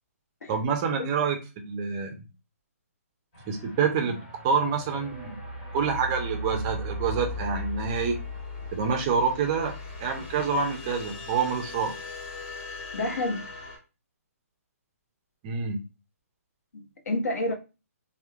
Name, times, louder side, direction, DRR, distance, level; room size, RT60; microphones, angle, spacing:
voice 1, 0.5-1.4 1.6-2.1 3.5-4.2 4.4-5.4 5.7-8.2 8.7-11.9 15.4-15.8, right 5 dB, 15° right, 0.3 m, -27 dB
voice 2, 1.0-1.3 12.9-13.4 16.7-17.5, left 1 dB, 80° left, 0.8 m, -30 dB
sound 1, 3.3-13.8, left 2 dB, 30° left, 1.4 m, -38 dB
2.9 x 2.0 x 2.3 m
hypercardioid pair, 170°, 8 cm